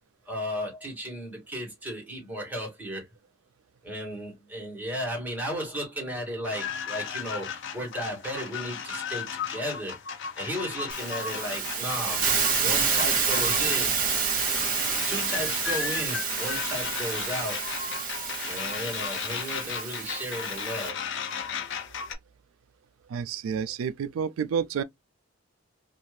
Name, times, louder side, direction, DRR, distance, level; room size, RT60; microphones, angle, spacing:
voice 1, 0.2-3.0 3.8-10.0 10.4-12.4 12.6-14.0 15.1-17.7 18.5-21.1, equal, 10° right, 1.4 m, -34 dB
sound 1, 6.4-22.1, left 7 dB, 65° left, 0.6 m, -35 dB
Hiss, 10.9-20.9, right 6 dB, 45° right, 1.1 m, -29 dB
voice 2, 23.1-24.8, right 7 dB, 80° right, 0.3 m, -29 dB
2.7 x 2.4 x 3.1 m
head